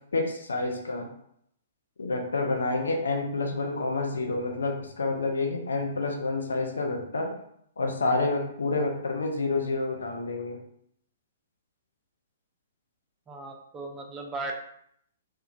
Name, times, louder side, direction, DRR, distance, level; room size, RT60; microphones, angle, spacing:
voice 1, 0.1-1.1 2.0-7.3 7.8-10.6, left 3 dB, 65° left, 2 dB, 0.5 m, -28 dB
voice 2, 13.3-14.5, right 2 dB, 20° right, 1 dB, 0.4 m, -36 dB
3.0 x 2.2 x 2.4 m, 0.70 s
figure-of-eight pair, 115°, 0 cm